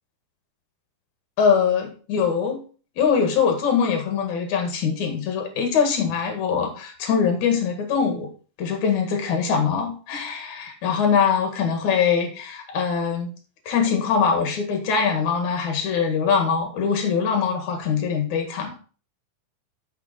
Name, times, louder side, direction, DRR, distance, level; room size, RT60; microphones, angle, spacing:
voice 1, 1.4-2.6 3.0-8.3 8.6-13.3 13.7-18.7, left 6 dB, 60° left, 4 dB, 3.2 m, -22 dB
8.2 x 6.9 x 4.2 m, 0.38 s
omnidirectional pair, 4.0 m